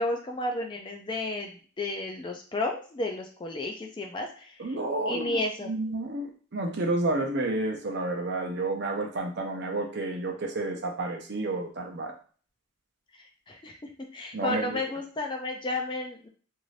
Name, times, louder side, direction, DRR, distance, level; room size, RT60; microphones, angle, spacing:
voice 1, 0.0-4.7 5.1-5.7 13.5-13.8 14.1-16.3, left 2 dB, 25° left, 2 dB, 0.3 m, -32 dB
voice 2, 4.6-12.1 14.3-14.8, right 2 dB, 50° right, 2 dB, 0.6 m, -30 dB
2.6 x 2.5 x 3.1 m, 0.42 s
head